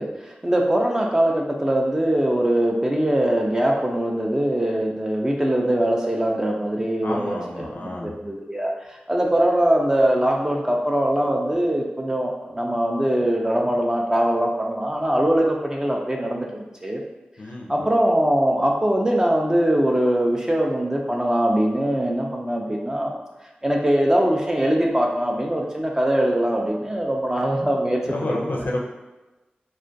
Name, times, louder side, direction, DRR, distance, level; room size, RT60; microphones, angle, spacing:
voice 1, 0.0-7.7 8.0-8.7 9.1-17.0 17.7-23.1 23.6-28.7, right 1 dB, 20° right, -1 dB, 0.3 m, -22 dB
voice 2, 7.0-8.1 17.4-17.9 28.1-28.8, left 1 dB, 70° left, -1 dB, 0.4 m, -29 dB
2.3 x 2.1 x 2.6 m, 1.1 s
wide cardioid pair, 60°, 3 cm